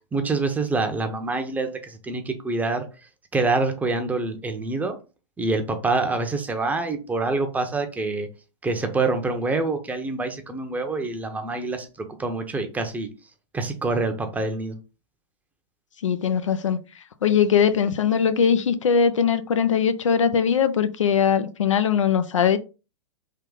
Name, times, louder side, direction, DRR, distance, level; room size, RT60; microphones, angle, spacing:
voice 1, 0.1-2.8 3.3-5.0 5.4-8.3 8.6-13.1 13.5-14.8, right 3 dB, 10° right, 0.7 m, -26 dB
voice 2, 16.0-16.8 17.2-22.6, left 7 dB, 80° left, 0.5 m, -21 dB
3.6 x 2.6 x 3.9 m
hypercardioid pair, 115°, 16 cm